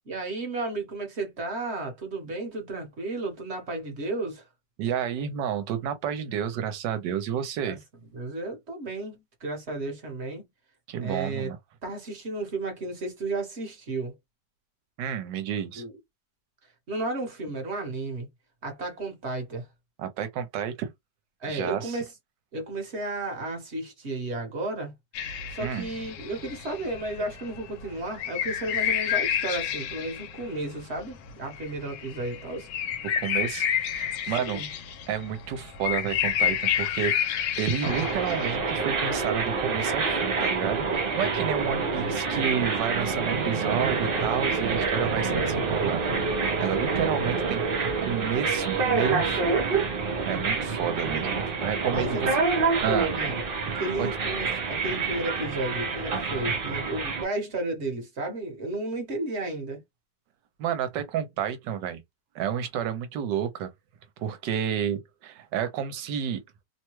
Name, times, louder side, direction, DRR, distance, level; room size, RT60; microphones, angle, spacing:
voice 1, 0.1-4.4 7.6-7.8 8.1-10.4 11.0-11.5 11.8-14.1 15.8-16.0 16.9-18.3 18.6-19.7 21.4-22.1 22.5-24.9 25.5-32.7 34.4-34.7 51.9-52.2 53.1-53.4 53.6-59.8, right 2 dB, 45° right, 1.1 m, -33 dB
voice 2, 4.8-7.8 10.9-11.6 15.0-15.8 20.0-20.9 21.5-22.0 25.6-25.9 33.2-34.6 35.1-37.1 37.6-46.0 46.6-47.6 48.1-49.6 50.3-51.3 51.6-52.2 52.8-53.2 54.0-54.1 60.6-62.0 62.3-63.7 64.2-66.4, right 9 dB, 80° right, 1.2 m, -30 dB
sound 1, 25.1-38.6, left 9 dB, 75° left, 1.3 m, -30 dB
sound 2, 37.8-57.2, right 4 dB, 60° right, 0.5 m, -27 dB
3.1 x 2.1 x 3.0 m
omnidirectional pair, 2.0 m